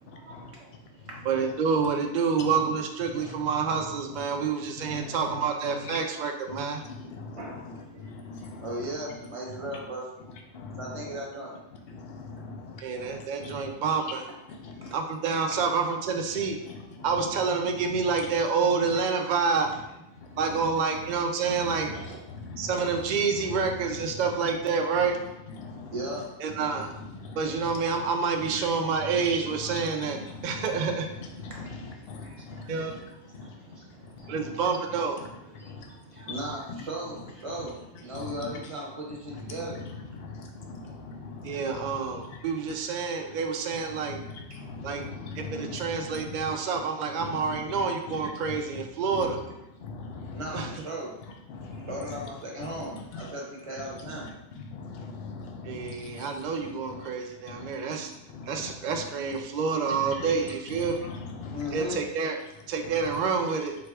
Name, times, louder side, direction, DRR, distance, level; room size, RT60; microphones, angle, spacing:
voice 1, 0.1-0.7 1.1-1.2 7.4-10.3 10.8-11.5 14.8-15.0 15.5-15.6 21.9-22.2 22.7-22.9 25.9-26.3 28.4-28.8 31.5-32.9 33.4-33.8 34.2-34.5 35.6-39.8 42.4-42.5 50.3-51.1 51.7-54.3 61.4-62.0, right 1 dB, 30° right, -2 dB, 0.7 m, -38 dB
voice 2, 1.3-6.8 12.8-14.2 14.9-16.6 17.0-19.7 20.4-21.9 22.6-25.2 26.4-26.9 27.4-31.1 32.7-33.0 34.3-35.2 41.4-44.2 44.8-45.1 45.4-49.4 50.5-50.7 55.6-58.1 58.5-61.0 61.7-62.4 62.7-63.8, right 5 dB, 75° right, 4 dB, 0.4 m, -28 dB
voice 3, 4.1-4.5 4.9-5.5 5.8-6.0 6.5-6.6 6.9-8.7 10.5-10.9 11.9-13.7 14.6-14.9 17.0-17.1 20.2-20.3 21.5-21.9 22.3-22.7 23.3-23.4 25.6-25.9 26.6-26.8 27.1-27.8 29.6-30.6 31.2-33.0 33.3-33.6 34.0-34.6 35.6-35.9 36.1-36.4 38.1-38.6 39.3-39.4 39.8-42.3 43.7-43.8 44.1-46.5 47.2-47.8 48.5-48.8 49.1-49.4 49.8-50.7 51.5-52.2 52.8-52.9 53.1-53.2 54.6-56.3 56.9-57.1 57.4-58.0 58.3-59.0 60.0-60.5 60.8-62.0, left 3 dB, 60° left, 2 dB, 0.8 m, -41 dB
4.6 x 4.0 x 2.3 m, 0.91 s
omnidirectional pair, 1.3 m